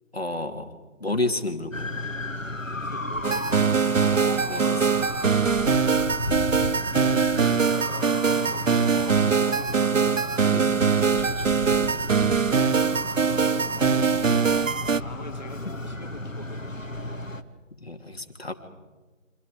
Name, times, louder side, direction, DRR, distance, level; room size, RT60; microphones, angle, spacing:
voice 1, 0.1-0.7 1.0-2.0 4.4-5.2 10.4-10.8 17.8-18.5, left 2 dB, 50° left, 5 dB, 3.0 m, -31 dB
sound 1, 1.7-17.4, left 1 dB, 80° left, 2.3 m, -33 dB
voice 2, 2.7-3.8 5.4-5.7 7.0-9.8 10.3-17.0, left 1 dB, 35° left, 3 dB, 3.1 m, -45 dB
sound 2, 3.2-15.0, right 6 dB, 75° right, 0.7 m, -22 dB
29.5 x 25.5 x 5.0 m, 1.3 s
figure-of-eight pair, 175°, 39 cm